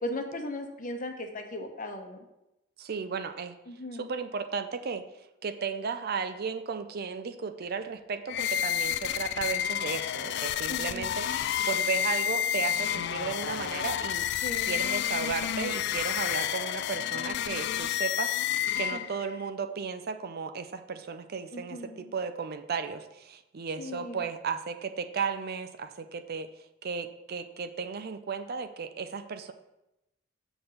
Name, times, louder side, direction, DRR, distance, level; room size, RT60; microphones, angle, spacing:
voice 1, 0.0-2.2 3.7-4.1 10.7-11.1 14.4-14.8 18.9-19.0 21.5-22.1 23.8-24.2, left 1 dB, 45° left, 4 dB, 0.9 m, -37 dB
voice 2, 2.8-3.6 3.9-5.1 5.4-14.3 14.6-26.5 26.8-29.5, right 5 dB, 50° right, 9 dB, 0.5 m, -35 dB
sound 1, 8.3-19.3, left 10 dB, 60° left, 0.3 m, -30 dB
7.0 x 4.0 x 6.4 m, 0.91 s
head